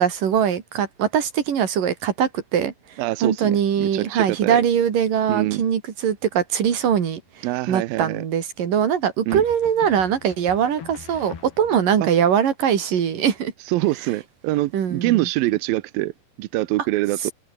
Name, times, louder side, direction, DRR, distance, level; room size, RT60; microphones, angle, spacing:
voice 1, 0.0-2.7 3.2-13.5 14.7-15.3, right 8 dB, 55° right, 4.3 m, -22 dB
voice 2, 3.0-4.6 5.3-5.6 7.4-8.2 9.3-9.4 12.0-12.1 13.7-16.1 16.4-17.3, right 18 dB, 75° right, 2.3 m, -24 dB
sound 1, 6.6-7.2 9.3-12.0, left 8 dB, 80° left, 5.5 m, -42 dB
omnidirectional pair, 4.7 m